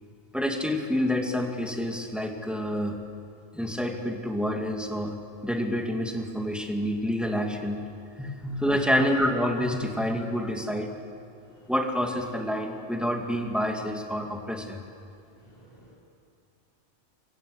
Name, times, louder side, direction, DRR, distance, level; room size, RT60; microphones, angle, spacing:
voice 1, 0.3-3.0 3.5-7.8 8.2-10.9 11.7-14.8, equal, ahead, 2 dB, 2.5 m, -28 dB
voice 2, 15.4-16.0, left 1 dB, 30° left, -7 dB, 4.9 m, -44 dB
29.0 x 24.0 x 8.1 m, 2.5 s
omnidirectional pair, 1.3 m